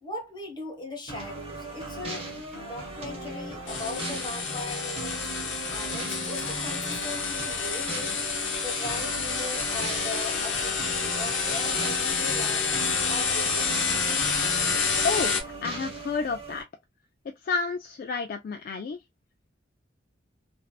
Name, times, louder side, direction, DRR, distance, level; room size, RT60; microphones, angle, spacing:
voice 1, 0.0-2.3 2.5-8.2 8.6-13.8, left 2 dB, 25° left, 1.2 m, -39 dB
sound 1, 1.1-16.6, right 2 dB, 30° right, 1.2 m, -38 dB
sound 2, 3.7-15.4, left 5 dB, 80° left, 1.0 m, -28 dB
voice 2, 15.0-16.6 17.3-19.0, left 4 dB, 50° left, 0.3 m, -30 dB
3.2 x 2.7 x 2.4 m
head